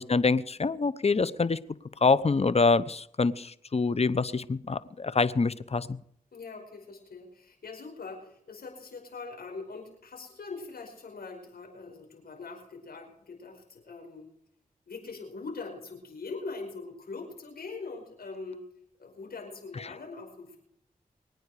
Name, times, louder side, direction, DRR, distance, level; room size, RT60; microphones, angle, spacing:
voice 1, 0.0-1.6 2.0-5.9, left 4 dB, 40° left, 0.9 m, -25 dB
voice 2, 6.3-14.3 14.9-18.7 19.0-20.6, left 4 dB, 80° left, 5.2 m, -42 dB
23.5 x 9.4 x 5.0 m
cardioid pair, 40°, 16 cm